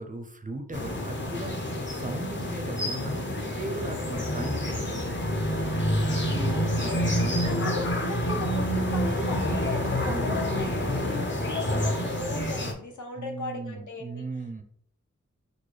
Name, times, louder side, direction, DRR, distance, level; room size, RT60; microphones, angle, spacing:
voice 1, 0.0-4.9 6.2-7.6 10.1-10.4 13.2-14.6, right 2 dB, 25° right, 5 dB, 0.4 m, -37 dB
sound 1, 0.7-12.7, equal, 40° left, 0.6 m, -28 dB
voice 2, 6.5-7.0 7.4-14.3, left 2 dB, 75° left, 3 dB, 0.7 m, -36 dB
3.9 x 2.2 x 3.2 m, 0.67 s
wide cardioid pair, 70°, 30 cm